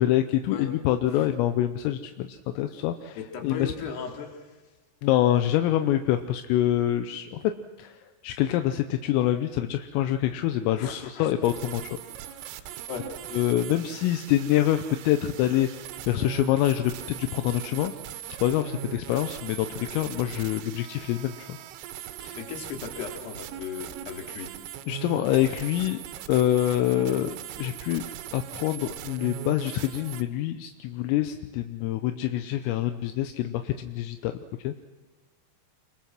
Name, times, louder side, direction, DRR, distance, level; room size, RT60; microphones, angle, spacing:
voice 1, 0.0-3.2 3.4-3.7 5.0-7.4 7.8-7.9 8.2-11.9 13.3-15.7 16.1-17.9 18.4-21.5 22.2-22.4 24.9-26.0 26.3-28.0 28.3-34.8, left 12 dB, 85° left, 8 dB, 3.5 m, -26 dB
voice 2, 3.2-4.4 10.8-11.3 12.9-13.1 22.4-24.5, left 6 dB, 55° left, 3 dB, 4.5 m, -37 dB
sound 1, 11.4-30.2, right 12 dB, 80° right, 3.8 m, -40 dB
26.0 x 22.5 x 6.0 m, 1.2 s
omnidirectional pair, 5.9 m